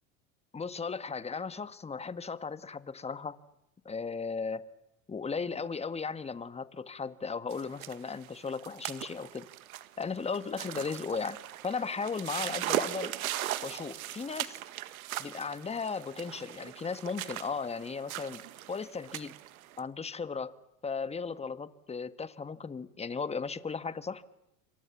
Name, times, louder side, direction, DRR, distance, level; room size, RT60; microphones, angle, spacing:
voice 1, 0.5-3.4 3.8-4.7 5.1-9.5 10.0-11.4 11.6-13.2 13.6-14.6 15.2-18.4 18.7-19.3 19.8-20.6 20.8-24.2, left 5 dB, 15° left, 13 dB, 1.6 m, -36 dB
sound 1, 7.5-19.8, right 14 dB, 80° right, 1.9 m, -39 dB
28.5 x 25.5 x 7.2 m, 0.85 s
hypercardioid pair, 100°, 42 cm